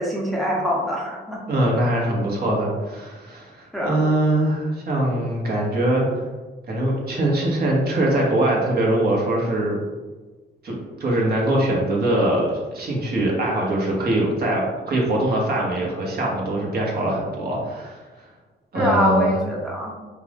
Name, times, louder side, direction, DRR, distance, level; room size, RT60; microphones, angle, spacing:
voice 1, 0.0-1.4 3.7-4.0 18.7-20.0, equal, ahead, -3 dB, 0.9 m, -23 dB
voice 2, 1.5-6.2 6.7-9.8 10.6-10.7 11.0-18.2 18.7-19.3, right 1 dB, 50° right, -2 dB, 1.3 m, -22 dB
4.4 x 2.5 x 3.5 m, 1.3 s
cardioid pair, 90°, 20 cm